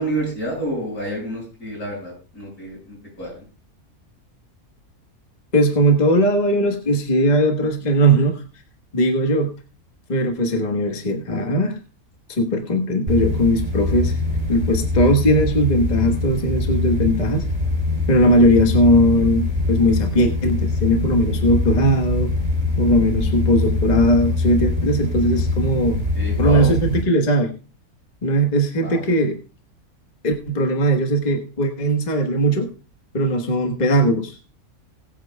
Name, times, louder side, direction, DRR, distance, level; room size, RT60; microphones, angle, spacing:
voice 1, 0.0-3.3 26.1-26.7 28.8-29.1, right 1 dB, 85° left, -2 dB, 7.1 m, -29 dB
voice 2, 5.5-8.4 8.9-9.5 10.1-11.8 12.3-14.2 14.5-17.5 18.1-22.3 22.8-26.0 26.4-27.5 28.2-29.3 30.2-32.7 33.1-34.3, equal, 30° left, 4 dB, 1.4 m, -19 dB
sound 1, 13.1-27.0, left 2 dB, 30° right, 2.8 m, -23 dB
21.0 x 9.2 x 2.3 m, 0.33 s
omnidirectional pair, 1.6 m